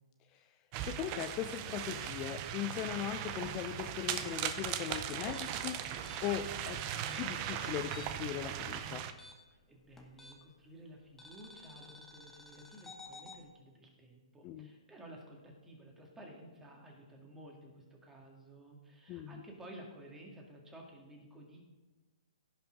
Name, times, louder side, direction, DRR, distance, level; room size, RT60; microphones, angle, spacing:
sound 1, 0.7-9.1, right 10 dB, 35° right, 0.6 m, -39 dB
voice 1, 0.8-6.8 7.1-9.1 14.4-14.7 19.1-19.4, left 12 dB, 30° left, 8 dB, 0.4 m, -39 dB
sound 2, 5.3-8.3 8.6-10.6 11.2-13.4, left 3 dB, 10° left, 1.1 m, -54 dB
voice 2, 9.5-21.6, right 1 dB, 10° right, 0 dB, 2.0 m, -53 dB
16.0 x 5.7 x 3.8 m, 1.2 s
hypercardioid pair, 135°, 3 cm